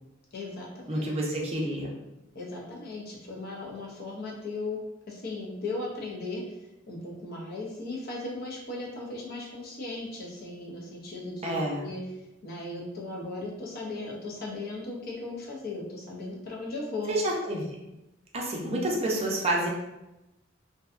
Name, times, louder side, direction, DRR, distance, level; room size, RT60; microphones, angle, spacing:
voice 1, 0.3-1.0 2.3-4.8 5.1-6.4 6.9-11.5 11.8-12.0 12.4-17.1, left 2 dB, 55° left, -2 dB, 0.6 m, -37 dB
voice 2, 0.9-1.9 11.4-11.8 17.1-17.6 18.3-19.7, right 1 dB, 30° right, -2 dB, 0.5 m, -28 dB
2.6 x 2.2 x 2.4 m, 0.94 s
head